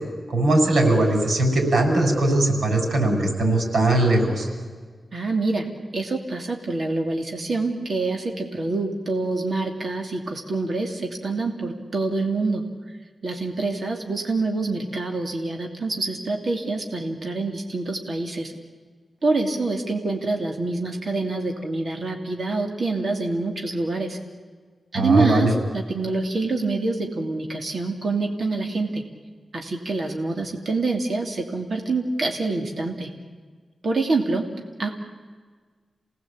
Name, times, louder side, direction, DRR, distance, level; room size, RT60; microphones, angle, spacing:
voice 1, 0.3-4.5 24.9-25.5, right 2 dB, 90° right, 3 dB, 6.9 m, -20 dB
voice 2, 5.1-5.7 5.9-12.6 13.2-18.5 19.2-24.2 24.9-25.5 25.7-29.0 29.5-33.1 33.8-34.4 34.8-34.9, right 3 dB, 45° right, 2 dB, 2.9 m, -26 dB
28.5 x 18.5 x 8.7 m, 1.5 s
wide cardioid pair, 155°, 0 cm